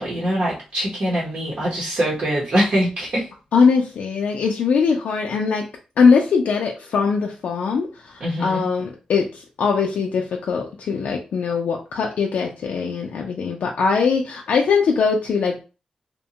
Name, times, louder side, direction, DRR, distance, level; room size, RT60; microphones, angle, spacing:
voice 1, 0.0-3.3 8.2-8.7, equal, 55° right, -5 dB, 0.8 m, -23 dB
voice 2, 3.5-5.7 6.0-15.6, left 5 dB, 85° left, 1 dB, 0.4 m, -21 dB
2.8 x 2.2 x 2.7 m, 0.32 s
wide cardioid pair, 140°, 2 cm